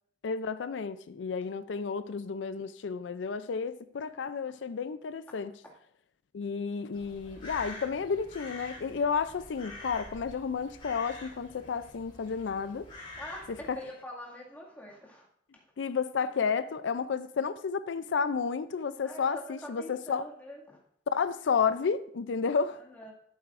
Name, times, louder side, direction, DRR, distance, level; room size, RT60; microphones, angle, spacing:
voice 1, 0.2-5.5 6.3-12.9 13.7-13.8 15.8-20.3 21.1-22.8, left 5 dB, 90° left, 0.4 m, -31 dB
Crow, 6.9-13.7, left 2 dB, 25° left, 3.6 m, -47 dB
voice 2, 13.2-15.3 15.5-15.6 19.0-20.8 22.6-23.1, left 1 dB, 10° left, 2.0 m, -45 dB
13.5 x 8.1 x 2.5 m
head